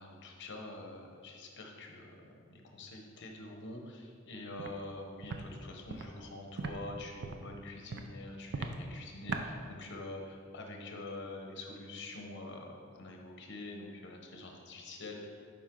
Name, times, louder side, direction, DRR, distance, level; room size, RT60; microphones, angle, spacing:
voice 1, 0.0-15.3, left 2 dB, 55° left, 2 dB, 1.0 m, -46 dB
Walk footsteps, 4.6-4.7 5.2-5.4 5.9-6.0 6.6-6.7 7.2-7.4 7.9-8.1 8.5-8.8 9.3-9.4, right 4 dB, 55° right, 0.5 m, -38 dB
7.4 x 5.2 x 3.8 m, 2.1 s
head